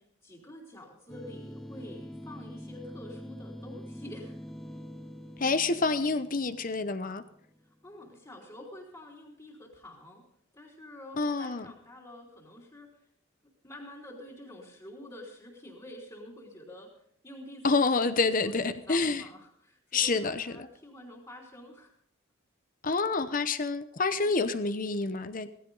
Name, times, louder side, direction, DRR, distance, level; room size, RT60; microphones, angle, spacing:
voice 1, 0.0-4.3 7.8-10.2 10.5-13.1 13.6-16.9 17.2-21.9 24.2-24.3, left 1 dB, 20° left, -4 dB, 3.3 m, -48 dB
sound 1, 1.1-7.7, equal, ahead, 0.7 m, -45 dB
voice 2, 5.4-7.2 11.2-11.7 17.6-19.2 19.9-20.7 22.8-25.5, left 3 dB, 40° left, 11 dB, 0.8 m, -28 dB
17.5 x 15.5 x 4.0 m, 0.65 s
head